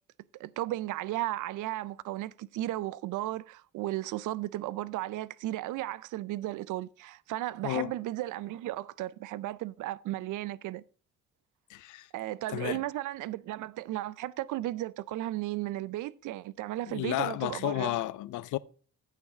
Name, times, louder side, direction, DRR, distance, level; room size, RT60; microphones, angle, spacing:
voice 1, 0.3-10.8 12.1-17.9, right 15 dB, 80° right, 0.5 m, -35 dB
voice 2, 11.7-12.1 12.5-12.8 16.9-18.6, left 16 dB, 80° left, 0.5 m, -32 dB
8.6 x 6.6 x 4.8 m
cardioid pair, 90°, 30 cm